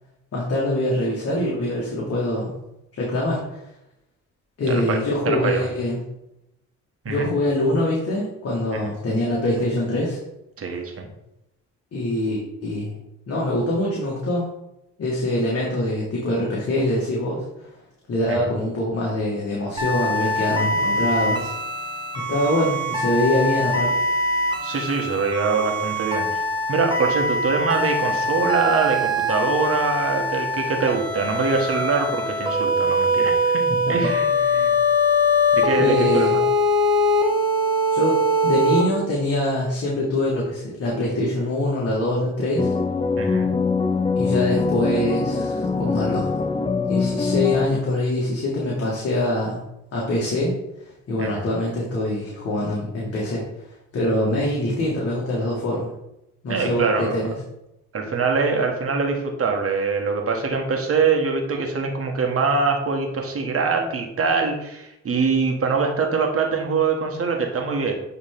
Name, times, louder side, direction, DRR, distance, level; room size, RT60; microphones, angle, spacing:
voice 1, 0.3-2.5 2.9-3.6 4.6-6.0 7.1-10.2 11.9-12.9 13.3-14.5 15.0-17.7 18.1-21.5 22.3-23.9 33.9-34.0 35.8-36.4 37.9-38.2 38.4-42.7 44.2-46.4 46.9-49.6 49.9-50.5 51.1-53.4 53.9-55.9 56.4-57.3, left 1 dB, 50° left, -5 dB, 2.0 m, -24 dB
voice 2, 4.7-5.0 5.2-5.7 7.0-7.3 8.7-8.8 10.6-11.1 18.3-18.5 24.6-26.4 26.7-34.8 35.5-36.4 43.2-43.5 51.2-51.5 56.5-57.3 57.9-67.9, right 4 dB, 50° right, 2 dB, 1.6 m, -24 dB
sound 1, 19.8-38.8, left 1 dB, 15° right, 1.5 m, -22 dB
sound 2, 42.6-47.7, left 4 dB, 20° left, 0.5 m, -23 dB
9.2 x 3.6 x 3.7 m, 0.86 s
cardioid pair, 90°, 30 cm